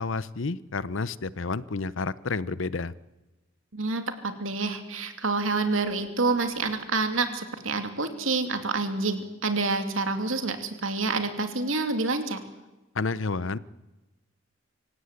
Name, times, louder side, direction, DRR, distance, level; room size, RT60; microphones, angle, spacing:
voice 1, 0.0-2.9 12.9-13.6, left 4 dB, 75° left, 18 dB, 0.8 m, -30 dB
voice 2, 3.7-12.4, right 3 dB, 90° right, 7 dB, 2.8 m, -28 dB
25.5 x 16.5 x 8.3 m, 1.1 s
head